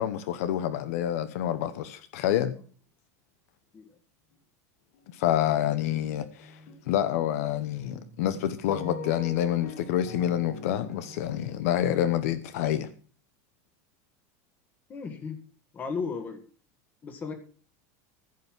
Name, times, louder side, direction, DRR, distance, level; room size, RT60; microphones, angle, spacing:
voice 1, 0.0-2.5 5.1-6.6 6.9-12.9, left 11 dB, 65° left, 0.9 m, -27 dB
sound 1, 4.9-5.2 5.4-6.8 7.1-11.6, left 3 dB, 45° left, 2.4 m, -44 dB
voice 2, 14.9-15.4 15.7-16.4 17.0-17.3, left 5 dB, 20° left, 1.8 m, -34 dB
15.5 x 5.6 x 6.0 m
supercardioid pair, 175°, 9 cm